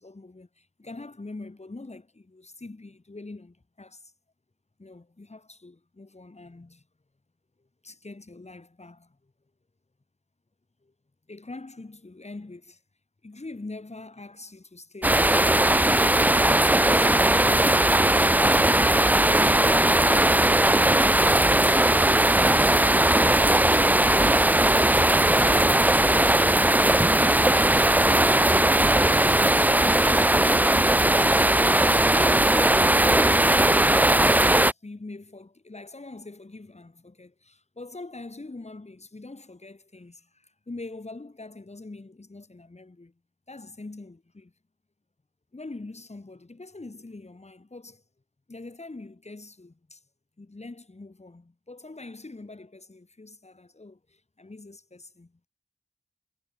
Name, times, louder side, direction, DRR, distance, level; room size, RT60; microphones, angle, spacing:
voice 1, 0.0-4.1 4.8-6.8 7.8-9.3 10.8-10.9 11.3-12.8 13.2-16.1 32.7-43.1 43.5-44.5 45.5-48.0 48.5-50.0 50.4-55.5, left 2 dB, 40° left, 6.2 m, -43 dB
sound 1, 15.0-34.7, right 1 dB, 10° right, 0.4 m, -19 dB
wide cardioid pair, 85°, 18 cm